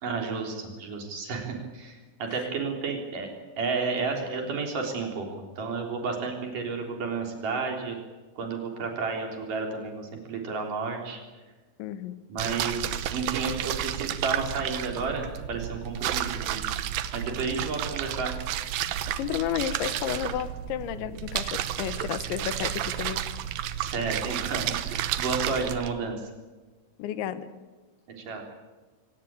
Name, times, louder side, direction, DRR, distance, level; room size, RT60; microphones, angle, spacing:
voice 1, 0.0-3.3 3.6-5.3 5.6-8.0 8.4-11.2 12.3-16.6 17.1-18.4 23.8-26.2 28.2-28.4, right 4 dB, 45° right, 2 dB, 4.8 m, -32 dB
voice 2, 11.8-12.2 19.2-23.2 27.0-27.5, left 11 dB, 80° left, 13 dB, 3.4 m, -32 dB
sound 1, 12.4-25.9, right 11 dB, 80° right, 2.0 m, -31 dB
24.5 x 18.0 x 8.8 m, 1.3 s
omnidirectional pair, 5.4 m